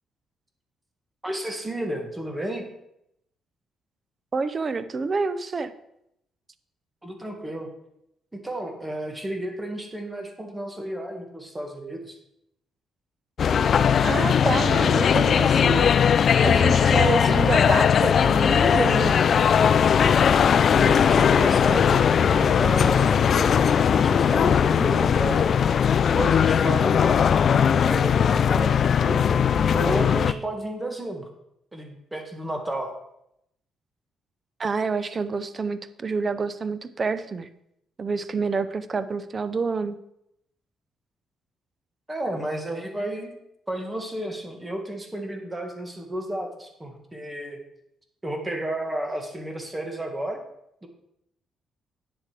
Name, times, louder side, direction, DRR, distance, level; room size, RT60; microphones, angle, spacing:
voice 1, 1.2-2.7 7.0-7.7 8.4-12.2 20.8-25.6 26.1-29.2 29.7-31.3 31.7-33.0 42.1-43.3 43.7-47.6 48.2-50.4 50.8-50.9, right 1 dB, 15° right, 3 dB, 1.8 m, -32 dB
voice 2, 4.3-5.7 14.0-15.9 16.4-19.2 34.6-37.5 38.0-40.0, right 4 dB, 35° right, 12 dB, 0.6 m, -28 dB
sound 1, 13.4-30.3, left 7 dB, 55° left, 0.3 m, -19 dB
9.9 x 7.4 x 3.4 m, 0.79 s
cardioid pair, 90°, 0 cm